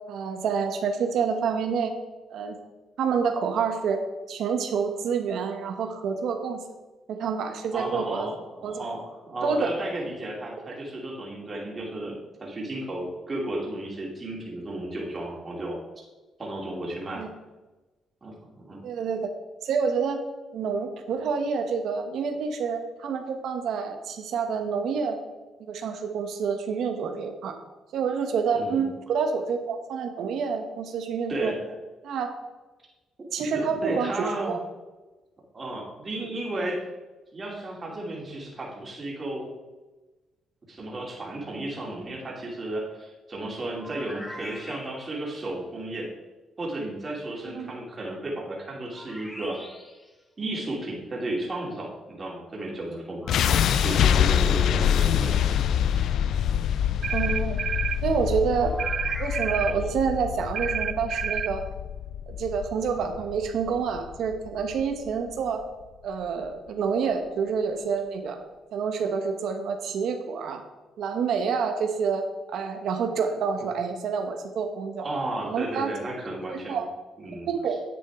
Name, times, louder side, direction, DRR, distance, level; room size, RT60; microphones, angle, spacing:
voice 1, 0.1-2.0 2.3-2.6 3.0-4.0 4.3-6.6 7.1-8.3 8.6-8.8 9.4-9.7 17.1-17.3 18.8-19.3 19.6-20.2 20.5-25.2 25.6-27.6 27.9-31.5 32.0-32.3 33.3-34.6 36.2-36.3 47.5-47.7 57.1-57.6 58.0-58.7 59.2-61.6 62.3-65.6 66.0-68.4 68.7-70.6 71.0-72.2 72.5-75.0 75.4-75.9 76.5-76.9 77.5-77.8, right 6 dB, 75° right, 6 dB, 1.1 m, -28 dB
voice 2, 7.7-15.8 16.4-17.2 18.2-18.8 28.5-28.8 31.3-31.7 33.4-34.6 35.5-36.8 37.3-39.5 40.7-46.1 46.6-49.6 50.4-53.2 53.7-55.5 55.9-56.0 75.0-76.8 77.2-77.5, right 1 dB, 35° right, -3 dB, 2.9 m, -33 dB
sound 1, 43.8-45.4 48.9-50.1 53.2-54.4 58.6-59.9, left 1 dB, 15° left, 1.4 m, -42 dB
sound 2, 53.3-65.3, left 9 dB, 75° left, 0.3 m, -26 dB
sound 3, 57.0-58.0 58.8-59.8 60.5-61.5, right 8 dB, 55° right, 0.6 m, -29 dB
10.0 x 7.9 x 3.7 m, 1.2 s
cardioid pair, 90°, 0 cm